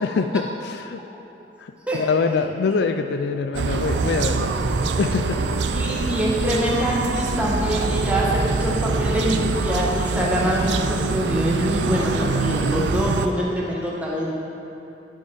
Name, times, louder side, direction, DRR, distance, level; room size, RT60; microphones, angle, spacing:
voice 1, 0.0-1.0 1.6-5.6, left 4 dB, 60° left, 7 dB, 0.4 m, -25 dB
sound 1, 2.8-12.7, left 1 dB, 20° left, 1.7 m, -35 dB
sound 2, 3.5-13.3, right 4 dB, 65° right, 0.4 m, -24 dB
voice 2, 5.4-14.4, equal, 5° right, -4 dB, 1.3 m, -24 dB
12.5 x 4.6 x 5.0 m, 2.8 s
head